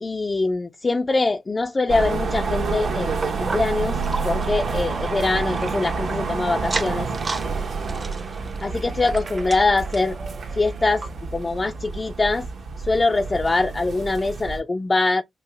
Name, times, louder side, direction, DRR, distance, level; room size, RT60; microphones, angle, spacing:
voice 1, 0.0-7.1 8.6-10.2 10.5-11.0 11.3-12.5 12.8-15.2, left 3 dB, 30° left, 0.3 m, -23 dB
sound 1, 1.9-14.6, right 4 dB, 75° right, 1.2 m, -28 dB
sound 2, 3.2-6.2 6.6-7.5 7.8-10.2 10.6-10.7 11.0-11.1 11.7-11.8, right 3 dB, 35° right, 0.6 m, -34 dB
sound 3, 3.7-11.4, right 3 dB, 60° right, 1.6 m, -44 dB
5.3 x 2.0 x 3.3 m
cardioid pair, 80°, 0 cm